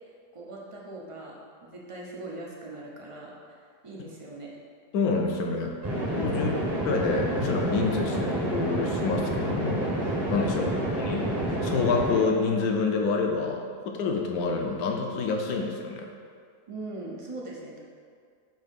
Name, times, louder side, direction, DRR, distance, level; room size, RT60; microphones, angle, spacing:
voice 1, 0.3-4.6 6.3-6.7 10.7-10.8 16.7-17.8, right 2 dB, 55° right, -3 dB, 0.3 m, -41 dB
voice 2, 4.9-5.7 6.2-6.5 6.9-10.7 11.0-16.1, left 4 dB, 70° left, 2 dB, 1.1 m, -28 dB
sound 1, 5.8-12.2, right 1 dB, 20° right, 0.6 m, -28 dB
7.6 x 2.8 x 5.3 m, 2.2 s
omnidirectional pair, 1.8 m